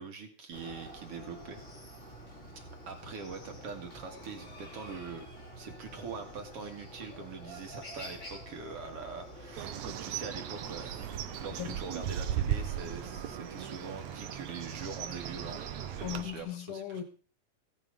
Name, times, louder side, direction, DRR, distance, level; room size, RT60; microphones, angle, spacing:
voice 1, 0.0-1.6 2.9-5.3 5.6-10.9 11.4-15.6 15.9-17.0, right 5 dB, 50° right, 2.7 m, -43 dB
Chicken rooster, 0.5-16.4, right 1 dB, 20° left, 3.5 m, -48 dB
Bird, 9.6-16.2, right 10 dB, 70° right, 2.3 m, -37 dB
voice 2, 11.6-12.1 16.0-17.0, left 11 dB, 80° left, 2.6 m, -38 dB
16.0 x 9.3 x 5.1 m
omnidirectional pair, 3.5 m